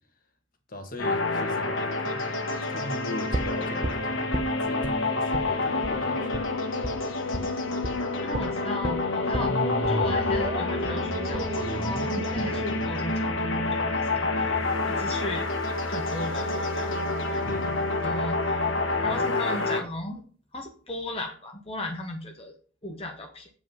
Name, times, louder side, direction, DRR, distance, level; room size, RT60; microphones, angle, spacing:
voice 1, 0.7-2.2 2.7-4.3 4.6-6.4 17.5-18.2, left 1 dB, 45° left, 5 dB, 1.6 m, -39 dB
sound 1, 1.0-19.8, left 2 dB, 80° left, 1.5 m, -28 dB
sound 2, 3.3-5.0 5.3-5.5 5.8-6.0 6.3-6.5 6.8-7.0 7.3-7.5 7.8-8.0 8.3-14.3 14.6-14.7, right 1 dB, 25° right, 0.7 m, -33 dB
voice 2, 8.2-9.6 9.9-14.6 14.9-15.5 15.9-17.0 17.3-17.4 18.0-18.7 18.9-20.2 20.5-22.5 22.8-23.5, left 1 dB, 30° left, 3 dB, 0.9 m, -36 dB
8.0 x 5.0 x 5.4 m, 0.42 s
head